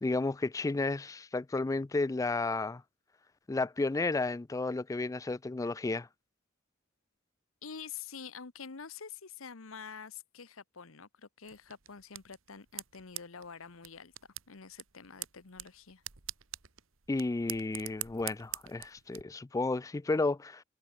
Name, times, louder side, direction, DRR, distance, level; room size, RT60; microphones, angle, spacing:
voice 1, 0.0-2.8 3.5-6.1 17.1-20.6, left 3 dB, 15° left, 0.3 m, -32 dB
voice 2, 7.6-14.1 14.5-16.0, left 6 dB, 80° left, 1.1 m, -47 dB
sound 1, 11.4-19.2, right 15 dB, 70° right, 1.6 m, -45 dB
head